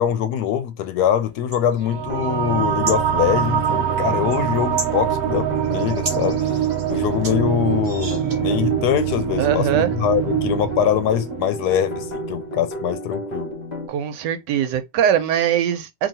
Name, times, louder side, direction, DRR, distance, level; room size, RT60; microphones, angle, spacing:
voice 1, 0.0-6.4 6.9-13.5, left 9 dB, 75° left, 1.0 m, -23 dB
sound 1, 1.2-8.6, right 2 dB, 35° right, 0.7 m, -36 dB
sound 2, 1.8-12.7, right 10 dB, 70° right, 1.0 m, -24 dB
sound 3, 1.9-13.9, left 2 dB, 30° left, 0.9 m, -33 dB
voice 2, 9.4-9.9 13.9-16.1, right 9 dB, 85° right, 1.3 m, -21 dB
3.0 x 2.7 x 4.0 m
omnidirectional pair, 1.8 m